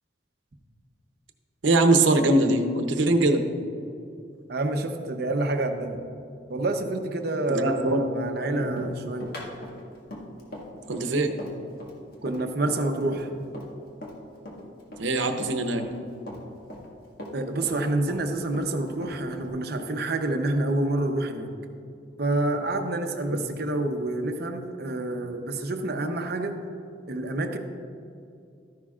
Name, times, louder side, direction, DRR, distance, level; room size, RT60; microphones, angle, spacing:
voice 1, 1.6-3.4 7.5-8.0 8.5-8.9 10.9-11.3 15.0-15.8 23.3-23.4, right 2 dB, 85° right, 6 dB, 0.8 m, -22 dB
voice 2, 4.5-6.0 6.5-9.3 12.2-13.3 17.3-21.5 22.2-26.6 27.1-27.6, right 2 dB, 55° right, 5 dB, 0.8 m, -28 dB
Run, 8.8-14.2 14.5-16.0 16.3-17.8 18.1-19.5, left 1 dB, 55° left, 1.7 m, -40 dB
13.0 x 10.5 x 2.4 m, 2.5 s
head